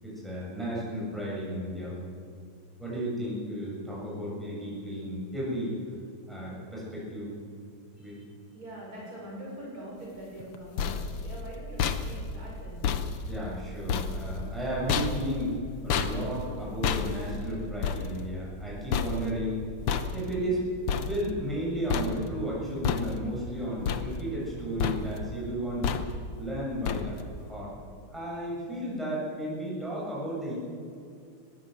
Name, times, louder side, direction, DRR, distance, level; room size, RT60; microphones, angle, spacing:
voice 1, 0.0-2.0 2.8-5.7 6.3-7.3 8.0-8.2 13.3-19.6 20.1-20.7 20.9-25.9 26.4-27.7 28.1-30.6, equal, ahead, -6 dB, 6.9 m, -33 dB
voice 2, 8.5-12.8, right 1 dB, 40° right, -5 dB, 6.7 m, -43 dB
sound 1, 10.4-21.6 21.9-22.5 22.8-23.5 23.9-24.5 24.8-25.3 25.8-26.4 26.9-27.4, left 6 dB, 80° left, 2.0 m, -32 dB
21.5 x 15.5 x 7.9 m, 2.5 s
omnidirectional pair, 2.4 m